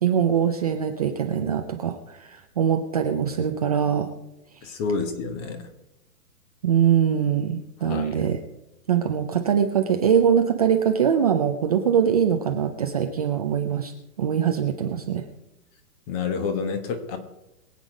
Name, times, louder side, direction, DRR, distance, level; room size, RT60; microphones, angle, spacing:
voice 1, 0.0-4.1 6.6-8.4 8.9-13.9 14.2-15.3, right 8 dB, 25° right, 4 dB, 0.5 m, -22 dB
voice 2, 4.6-5.6 7.8-8.1 16.1-17.2, left 5 dB, 25° left, 9 dB, 1.4 m, -28 dB
22.5 x 8.3 x 5.0 m, 0.93 s
hypercardioid pair, 160°, 46 cm